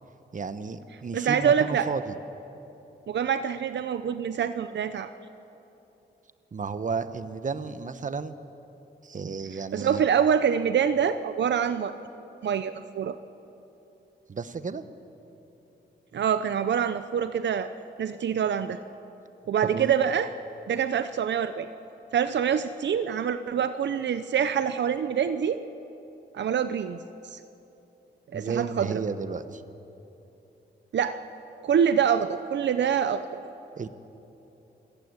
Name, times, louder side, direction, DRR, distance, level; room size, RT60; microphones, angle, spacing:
voice 1, 0.3-2.1 6.5-8.3 9.0-10.0 14.3-14.8 19.7-19.9 28.3-29.6 33.8-33.9, right 5 dB, 45° right, 11 dB, 1.1 m, -33 dB
voice 2, 1.1-1.9 3.1-5.1 9.7-11.9 12.4-13.2 16.1-17.7 18.0-18.8 19.5-20.3 20.7-21.7 22.1-25.6 26.3-27.0 27.2-27.4 28.3-29.0 30.9-31.2 31.6-33.4, right 8 dB, 75° right, 11 dB, 0.7 m, -25 dB
28.0 x 17.0 x 8.1 m, 3.0 s
wide cardioid pair, 95°, 18 cm